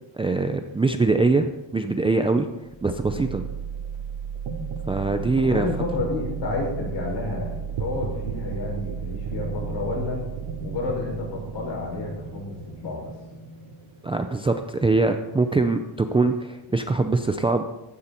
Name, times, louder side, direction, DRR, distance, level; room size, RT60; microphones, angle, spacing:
voice 1, 0.2-2.5 2.8-3.5 4.9-5.7 14.0-17.6, right 3 dB, 10° right, 6 dB, 0.5 m, -23 dB
sound 1, 2.6-14.5, right 6 dB, 80° right, 3.0 m, -34 dB
voice 2, 5.4-10.3 10.6-13.1, left 3 dB, 60° left, -1 dB, 6.5 m, -30 dB
16.0 x 14.0 x 4.5 m, 0.98 s
cardioid pair, 165°, 49 cm